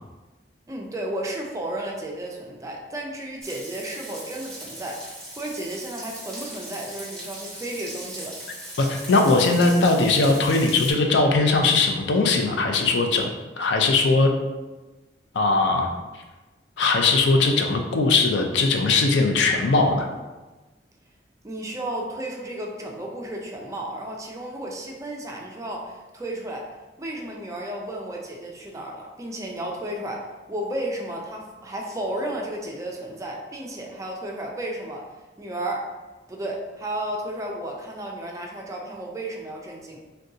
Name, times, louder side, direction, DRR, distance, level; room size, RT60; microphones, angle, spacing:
voice 1, 0.7-8.3 21.4-26.7 27.0-35.0 35.4-35.9 36.3-40.0, right 1 dB, 20° right, -1 dB, 0.4 m, -33 dB
Frying (food), 3.4-10.9, right 1 dB, 5° left, 1.2 m, -39 dB
voice 2, 8.8-13.3 13.6-14.3 15.3-15.9 16.8-20.1, left 3 dB, 75° left, 3 dB, 0.4 m, -20 dB
2.6 x 2.2 x 3.7 m, 1.2 s
head